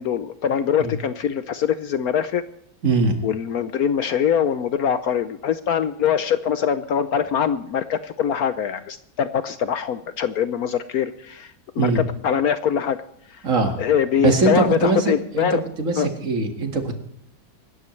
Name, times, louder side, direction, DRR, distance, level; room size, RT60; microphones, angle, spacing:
voice 1, 0.0-2.4 3.2-13.0 13.3-13.4 13.8-15.6 16.0-16.1, left 8 dB, 65° left, 12 dB, 1.0 m, -23 dB
voice 2, 2.8-3.2 11.8-12.0 13.4-13.8 14.2-16.9, right 3 dB, 45° right, 4 dB, 2.2 m, -21 dB
24.5 x 12.5 x 3.2 m, 0.74 s
omnidirectional pair, 2.0 m